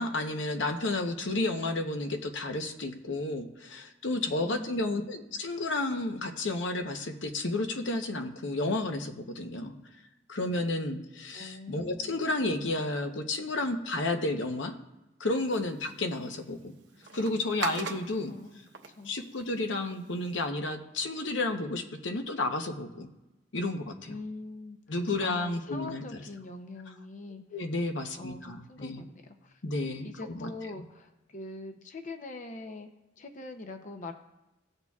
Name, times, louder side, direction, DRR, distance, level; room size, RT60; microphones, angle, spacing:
voice 1, 0.0-9.7 10.3-14.7 15.2-16.7 17.1-18.3 19.0-23.1 23.5-24.2 24.9-26.2 27.5-29.0 29.6-30.5, left 2 dB, 85° left, 5 dB, 0.9 m, -32 dB
voice 2, 4.4-5.1 11.3-12.2 18.3-19.1 24.1-24.8 25.2-27.4 28.2-29.6 30.0-32.9 33.2-34.1, left 2 dB, 45° left, 6 dB, 0.6 m, -43 dB
sound 1, 15.3-20.5, right 5 dB, 80° right, 1.0 m, -43 dB
18.0 x 6.6 x 2.4 m, 1.0 s
head